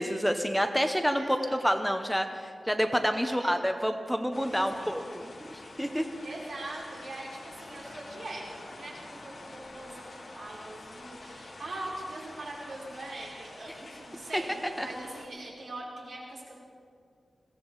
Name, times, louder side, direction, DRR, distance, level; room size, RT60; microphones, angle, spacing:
voice 1, 0.0-5.2 5.5-6.1 14.3-14.4 14.8-14.9, equal, ahead, 6 dB, 0.7 m, -28 dB
voice 2, 1.1-1.6 3.2-3.6 4.4-4.9 6.2-16.6, right 2 dB, 75° right, -5 dB, 4.9 m, -42 dB
sound 1, 4.3-15.3, left 2 dB, 40° left, 2.0 m, -47 dB
21.5 x 16.5 x 4.0 m, 2.2 s
wide cardioid pair, 135°, 0 cm